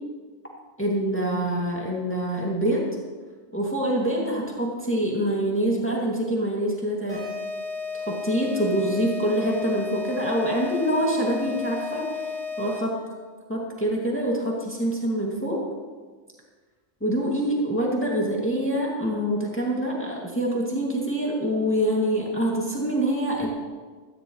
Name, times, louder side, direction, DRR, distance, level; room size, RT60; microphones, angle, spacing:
voice 1, 0.8-2.8 3.5-7.3 8.1-12.2 12.6-13.0 13.5-15.6 17.0-23.5, right 1 dB, 10° left, -3 dB, 2.2 m, -25 dB
sound 1, 7.1-13.0, left 4 dB, 30° right, 4.1 m, -33 dB
17.0 x 14.0 x 3.1 m, 1.4 s
omnidirectional pair, 1.4 m